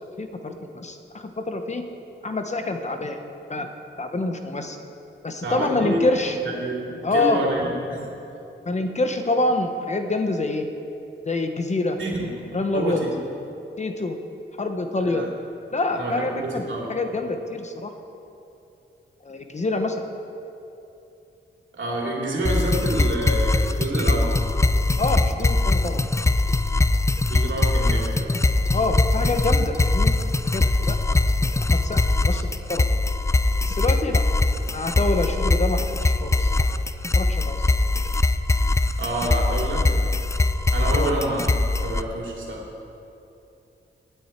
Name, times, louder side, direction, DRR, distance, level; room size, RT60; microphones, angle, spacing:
voice 1, 0.2-1.8 2.2-3.2 3.5-3.7 4.0-4.8 5.2-6.4 7.0-7.4 8.7-10.6 11.2-12.0 12.5-13.0 13.8-14.2 14.6-15.2 15.7-17.9 19.2-20.0 25.0-26.0 28.7-30.1 30.5-31.1 31.4-32.8 33.7-34.2 34.7-36.6 37.1-37.6 40.9-41.2, left 2 dB, 35° left, 6 dB, 0.9 m, -26 dB
voice 2, 5.4-8.1 12.0-12.3 12.7-13.1 15.1-15.3 15.9-16.9 21.7-24.4 27.2-28.3 39.0-40.0 40.7-42.6, right 1 dB, 75° right, -2 dB, 2.8 m, -28 dB
sound 1, 22.4-42.0, left 2 dB, 15° left, 0.4 m, -21 dB
17.0 x 9.1 x 4.4 m, 2.8 s
wide cardioid pair, 110°, 20 cm